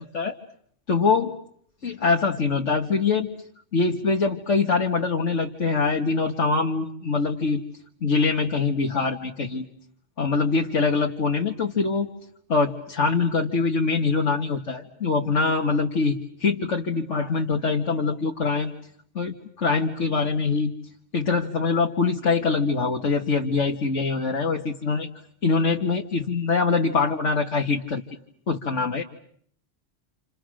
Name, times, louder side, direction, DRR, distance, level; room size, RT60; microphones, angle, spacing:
voice 1, 0.9-1.3 1.8-3.3 3.7-7.6 8.0-9.7 10.2-12.1 12.5-18.7 19.2-20.7 21.1-25.1 25.4-28.0 28.5-29.0, left 4 dB, 80° left, 1 dB, 2.2 m, -23 dB
29.0 x 29.0 x 6.4 m, 0.64 s
omnidirectional pair, 1.2 m